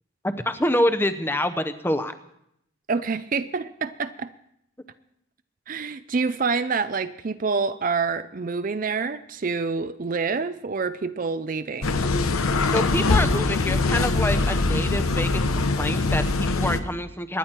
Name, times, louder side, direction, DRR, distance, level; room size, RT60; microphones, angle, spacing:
voice 1, 0.2-2.1 12.7-17.4, left 1 dB, 10° left, 10 dB, 0.8 m, -26 dB
voice 2, 2.9-4.3 5.7-12.0, right 4 dB, 40° right, 12 dB, 0.4 m, -27 dB
sound 1, 11.8-16.8, left 3 dB, 85° left, 1.0 m, -22 dB
25.0 x 10.5 x 4.5 m, 0.76 s
head